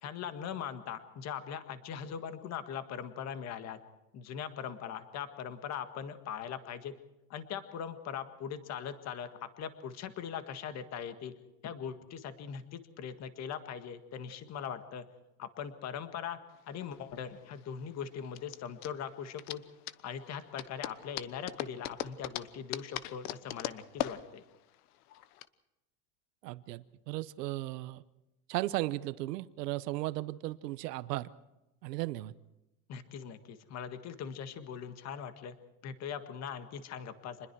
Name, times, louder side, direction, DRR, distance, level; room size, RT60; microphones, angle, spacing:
voice 1, 0.0-3.8 4.1-6.9 7.3-11.3 11.6-15.1 15.4-16.4 16.7-19.6 20.0-24.4 32.9-35.6 35.8-37.5, left 8 dB, 35° left, 9 dB, 1.7 m, -41 dB
sound 1, 16.5-25.5, left 14 dB, 70° left, 1.2 m, -41 dB
voice 2, 26.4-28.0 28.5-31.3 31.8-32.3, right 17 dB, 85° right, 15 dB, 1.0 m, -36 dB
27.0 x 21.0 x 4.7 m, 0.96 s
supercardioid pair, 145°, 47 cm